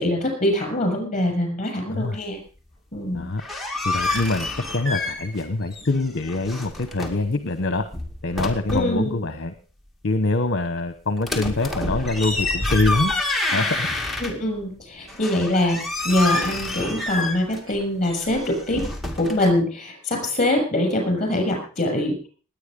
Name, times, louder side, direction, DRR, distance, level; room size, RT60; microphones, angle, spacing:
voice 1, 0.0-2.4 2.9-3.3 8.7-9.2 14.2-18.8 19.2-22.2, left 1 dB, 30° left, 3 dB, 6.8 m, -23 dB
sound 1, 3.2-5.5 5.7-7.3 7.8-9.0 11.2-14.6 15.1-19.5, left 2 dB, ahead, 2.1 m, -28 dB
voice 2, 3.8-7.9 8.2-9.5 10.0-13.1 13.5-13.9, left 2 dB, 55° left, 10 dB, 1.0 m, -24 dB
20.0 x 9.2 x 5.2 m, 0.39 s
head